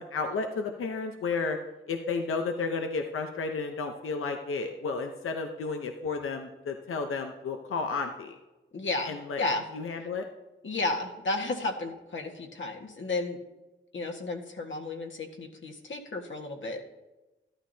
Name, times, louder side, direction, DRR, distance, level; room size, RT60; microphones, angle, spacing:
voice 1, 0.0-1.6 1.9-8.4 9.1-9.4 9.7-10.3, left 4 dB, 85° left, 4 dB, 0.8 m, -32 dB
voice 2, 8.7-9.7 10.0-10.1 10.6-13.4 13.9-16.8, left 2 dB, 65° left, 1 dB, 1.7 m, -33 dB
13.5 x 12.0 x 2.8 m, 1.1 s
cardioid pair, 75°, 21 cm